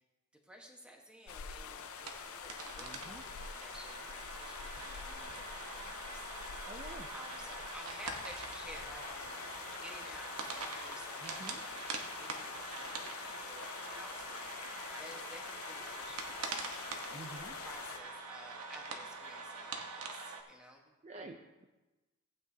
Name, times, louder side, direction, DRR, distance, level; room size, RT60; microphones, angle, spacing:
voice 1, 0.4-3.2 3.6-6.6 7.1-9.4 9.8-17.0 17.3-20.9, equal, 5° right, 0 dB, 1.2 m, -54 dB
sound 1, 1.3-18.0, left 7 dB, 65° left, 0.5 m, -46 dB
sound 2, 1.7-20.4, right 3 dB, 80° right, 1.1 m, -44 dB
voice 2, 2.8-3.2 6.6-7.1 11.2-11.6 17.1-17.6 21.0-21.7, right 2 dB, 30° right, 3 dB, 0.5 m, -49 dB
15.5 x 8.6 x 2.8 m, 1.1 s
head